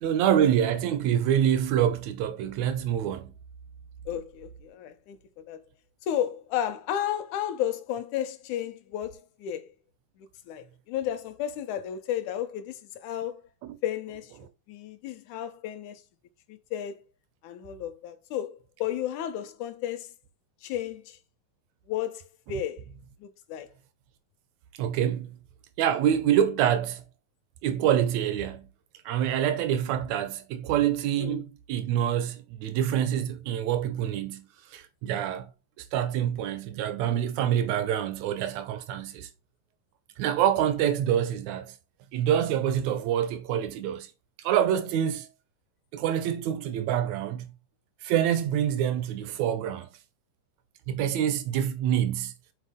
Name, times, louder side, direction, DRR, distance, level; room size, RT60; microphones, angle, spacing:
voice 1, 0.0-3.3 13.6-13.8 22.5-22.6 24.8-25.4 25.8-27.0 27.6-28.7 29.0-34.4 34.7-35.5 35.8-39.3 40.2-41.7 42.1-44.1 44.4-45.3 45.9-47.5 48.0-49.9 50.9-52.3, right 10 dB, 85° right, 1.6 m, -26 dB
voice 2, 4.1-5.6 6.1-9.7 10.5-13.4 13.8-14.3 14.7-16.0 16.5-17.0 17.4-20.1 20.6-21.2 21.9-22.8 23.2-23.7 31.2-31.4, left 10 dB, 75° left, 1.8 m, -33 dB
8.2 x 4.3 x 3.6 m
omnidirectional pair, 4.0 m